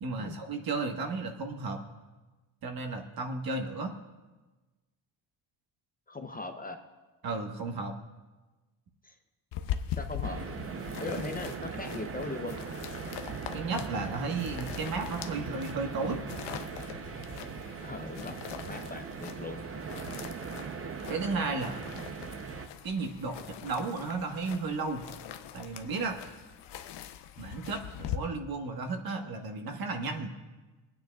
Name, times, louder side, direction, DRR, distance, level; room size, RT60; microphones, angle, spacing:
voice 1, 0.0-1.8 2.6-3.9 7.2-7.9 13.5-16.2 21.1-21.8 22.8-25.0 25.5-26.2 27.4-30.3, right 3 dB, 50° right, 4 dB, 1.4 m, -34 dB
voice 2, 6.1-6.8 9.0-9.1 10.0-10.4 11.0-12.6 17.8-18.3 18.7-19.6, left 3 dB, 20° left, 5 dB, 0.6 m, -39 dB
sound 1, 9.5-28.2, left 10 dB, 65° left, 0.7 m, -42 dB
sound 2, 10.2-22.7, right 5 dB, 30° right, 0.7 m, -40 dB
sound 3, 12.9-18.1, right 1 dB, 15° right, 1.8 m, -49 dB
26.0 x 9.4 x 2.3 m, 1.2 s
cardioid pair, 115°, 45 cm